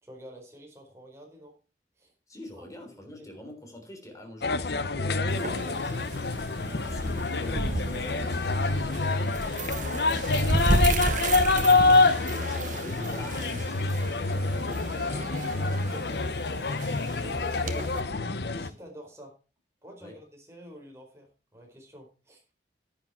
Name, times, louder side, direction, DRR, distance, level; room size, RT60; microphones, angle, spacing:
voice 1, 0.0-1.5 2.0-2.1 2.6-2.7 3.2-3.3 9.6-10.8 14.4-16.2 16.5-18.1 18.5-19.3 19.8-21.3 21.5-22.4, equal, 15° right, 1 dB, 4.3 m, -48 dB
voice 2, 2.3-10.0 11.3-14.5 20.0-20.2, left 1 dB, 20° left, 4 dB, 3.6 m, -46 dB
sound 1, 4.4-18.7, left 3 dB, 60° left, 0.8 m, -26 dB
sound 2, 5.3-18.0, right 2 dB, 45° right, 1.1 m, -33 dB
10.5 x 9.9 x 4.3 m, 0.34 s
head